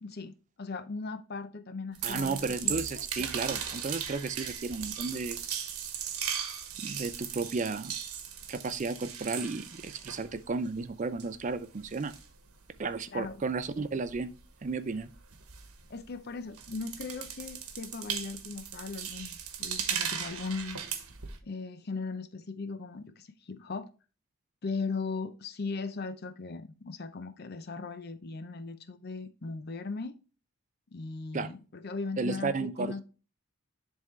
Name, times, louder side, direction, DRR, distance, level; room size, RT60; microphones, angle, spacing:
voice 1, 0.0-3.0 13.1-13.4 15.9-20.8 21.4-23.9 24.6-30.2 30.9-33.0, left 4 dB, 45° left, 0.5 m, -38 dB
sound 1, 1.9-10.9 11.2-16.2 16.5-21.4, right 8 dB, 80° right, 1.1 m, -38 dB
voice 2, 2.0-5.4 6.8-8.0 8.5-12.1 12.8-14.3 14.6-15.1 31.3-31.5 32.2-33.0, right 4 dB, 35° right, 0.4 m, -33 dB
10.5 x 3.6 x 3.1 m
head